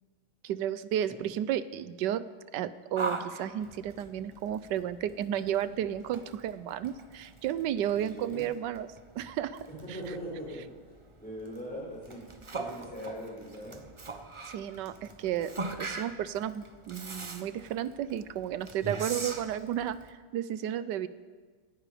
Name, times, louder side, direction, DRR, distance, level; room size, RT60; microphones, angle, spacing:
voice 1, 0.4-2.2 2.5-9.6 14.5-15.5 15.8-21.1, right 10 dB, 75° right, 15 dB, 1.3 m, -33 dB
Yell, 3.0-20.1, right 3 dB, 30° right, 0.6 m, -42 dB
voice 2, 7.9-8.4 9.7-10.6 11.2-13.8, equal, 5° left, -5 dB, 5.9 m, -41 dB
18.5 x 15.0 x 5.0 m, 1.5 s
omnidirectional pair, 1.9 m